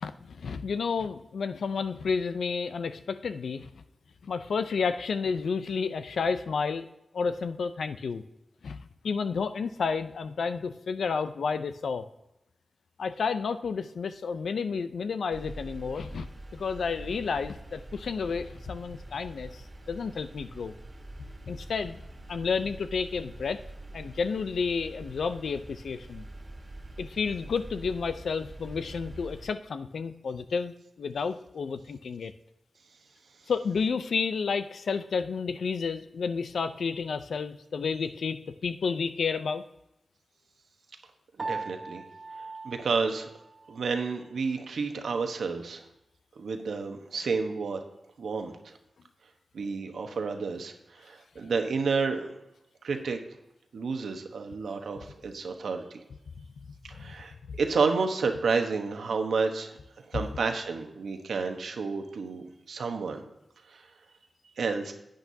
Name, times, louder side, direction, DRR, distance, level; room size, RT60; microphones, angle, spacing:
voice 1, 0.0-3.8 4.2-6.9 7.1-8.2 8.6-12.0 13.0-16.3 16.5-20.7 21.5-22.0 22.3-23.6 23.9-26.3 27.0-32.3 33.5-39.7 56.4-56.5 57.0-57.1 57.4-57.6, left 5 dB, 85° left, 11 dB, 0.5 m, -31 dB
sound 1, 15.3-29.5, right 1 dB, 40° right, 1.7 m, -45 dB
Piano, 41.4-43.9, right 3 dB, 60° right, 1.7 m, -39 dB
voice 2, 41.4-42.0 42.6-43.3 43.7-45.8 46.4-47.8 48.2-48.5 49.5-52.3 52.8-53.2 53.7-56.0 56.8-59.8 60.1-63.2 63.7-63.8 64.6-64.9, right 4 dB, 90° right, 5 dB, 1.0 m, -30 dB
10.5 x 9.1 x 2.7 m, 0.88 s
cardioid pair, 60°, 0 cm